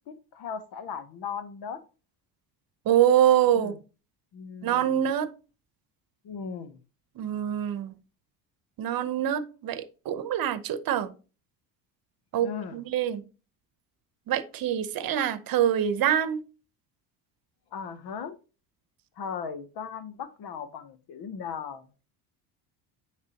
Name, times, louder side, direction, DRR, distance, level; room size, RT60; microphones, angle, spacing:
voice 1, 0.1-1.8 3.5-3.8 4.3-4.9 6.2-6.8 12.4-12.8 17.7-18.4 19.2-21.9, left 6 dB, 55° left, 1.0 m, -37 dB
voice 2, 2.8-3.7 4.6-5.3 7.2-7.9 8.8-11.1 12.3-13.2 14.3-16.4, right 10 dB, 50° right, 0.9 m, -25 dB
9.5 x 3.4 x 2.9 m
supercardioid pair, 90°, 45 cm